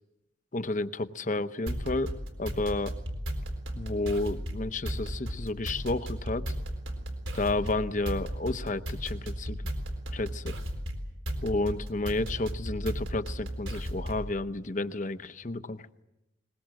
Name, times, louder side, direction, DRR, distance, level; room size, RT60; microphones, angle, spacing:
voice 1, 0.5-2.1 2.4-3.0 3.7-6.5 7.3-9.6 10.1-10.5 11.4-15.8, left 2 dB, 40° left, 11 dB, 0.8 m, -31 dB
sound 1, 1.7-14.3, equal, 90° right, 4.0 m, -35 dB
22.0 x 21.0 x 7.6 m, 0.95 s
head